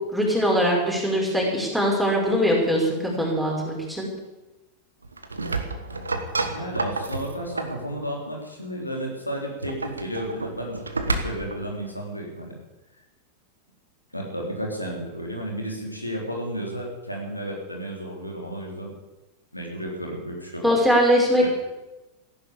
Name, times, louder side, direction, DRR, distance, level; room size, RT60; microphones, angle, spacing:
voice 1, 0.1-4.1 20.6-21.5, equal, ahead, -3 dB, 6.0 m, -21 dB
sound 1, 5.0-7.8 9.4-11.6, right 3 dB, 80° right, 1.5 m, -30 dB
voice 2, 6.5-12.5 14.1-18.9 19.5-20.8 21.4-21.5, equal, 85° left, -1 dB, 3.7 m, -33 dB
15.0 x 11.0 x 8.6 m, 1.1 s
figure-of-eight pair, 90°, 0 cm